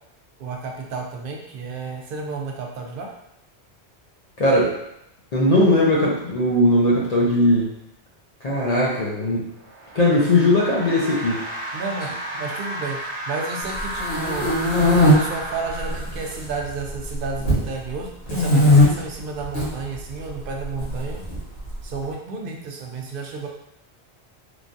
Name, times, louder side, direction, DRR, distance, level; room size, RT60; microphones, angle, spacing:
voice 1, 0.4-3.1 11.7-14.5 15.0-21.2 21.8-23.5, right 4 dB, 60° right, 0 dB, 0.7 m, -32 dB
voice 2, 4.4-4.7 5.3-7.7 8.4-9.5 9.9-11.4, left 1 dB, 45° left, -5 dB, 0.6 m, -19 dB
sound 1, 9.5-16.6, right 1 dB, 85° right, 0.9 m, -33 dB
sound 2, 13.7-15.1 15.8-16.4 16.7-17.6 18.3-18.9 19.4-19.7 20.8-21.7, left 1 dB, 70° left, 1.2 m, -18 dB
3.1 x 2.3 x 2.5 m, 0.79 s
omnidirectional pair, 1.1 m